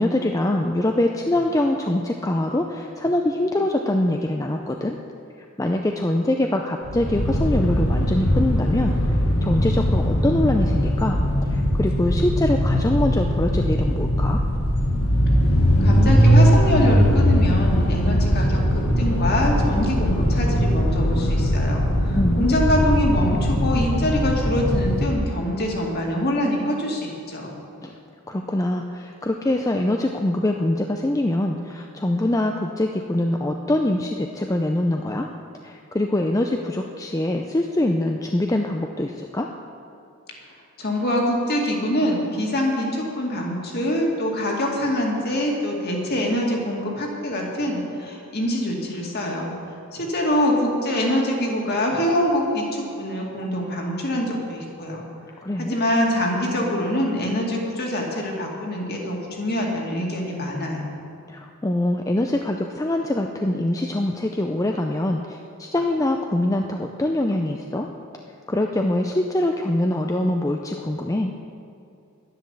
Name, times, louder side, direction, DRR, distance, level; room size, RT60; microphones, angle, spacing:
voice 1, 0.0-5.0 5.6-9.0 9.4-11.2 11.5-14.4 22.1-22.6 27.8-27.9 28.3-35.3 35.6-39.5 55.4-55.8 61.3-67.9 68.5-71.3, left 1 dB, 15° left, 3 dB, 0.5 m, -24 dB
sound 1, 6.8-25.2, equal, 85° left, 1.6 m, -20 dB
voice 2, 15.8-27.6 40.8-49.5 49.9-55.0 55.6-60.9, left 1 dB, 45° left, -1 dB, 2.3 m, -24 dB
11.0 x 10.5 x 7.1 m, 2.5 s
head